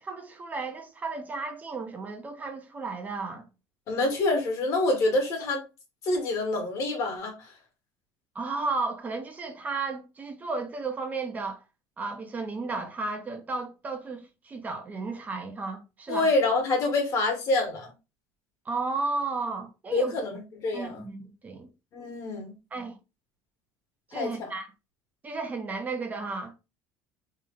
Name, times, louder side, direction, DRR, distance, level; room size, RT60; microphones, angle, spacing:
voice 1, 0.0-3.4 8.3-11.6 12.0-16.3 18.7-20.1 20.7-21.7 22.7-23.0 24.1-24.7 25.2-26.5, right 3 dB, 20° right, 0.7 m, -33 dB
voice 2, 3.9-5.6 6.0-7.5 16.1-17.9 19.9-21.0 21.9-22.5 24.1-24.5, left 2 dB, 45° left, 1.6 m, -27 dB
3.3 x 2.7 x 3.8 m
cardioid pair, 145°, 7 cm